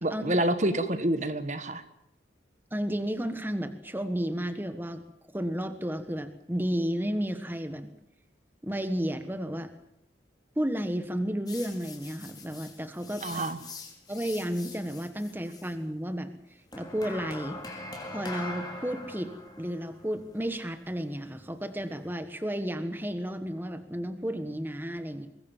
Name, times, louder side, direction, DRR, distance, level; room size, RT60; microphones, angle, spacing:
voice 1, 0.0-1.8 13.2-13.6, right 1 dB, 40° right, 10 dB, 1.6 m, -27 dB
voice 2, 2.7-5.0 5.3-7.9 8.6-9.7 10.5-13.4 14.1-17.6 18.1-25.3, equal, 10° right, 8 dB, 1.3 m, -32 dB
sound 1, 11.5-15.7 16.7-22.1, left 2 dB, 20° left, 4.2 m, -43 dB
23.5 x 20.0 x 7.3 m, 0.81 s
head